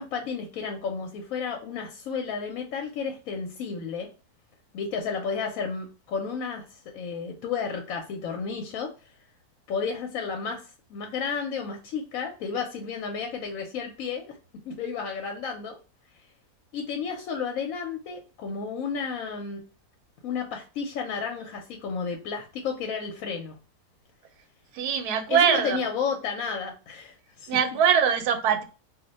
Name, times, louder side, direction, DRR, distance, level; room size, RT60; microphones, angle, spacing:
voice 1, 0.0-4.1 4.7-9.1 9.7-10.6 10.9-14.4 14.7-15.8 16.7-19.6 20.2-23.6 25.3-27.6, left 5 dB, 70° left, 0.9 m, -32 dB
voice 2, 24.8-25.8 27.5-28.6, right 7 dB, 90° right, 1.1 m, -22 dB
2.5 x 2.1 x 4.0 m
omnidirectional pair, 1.6 m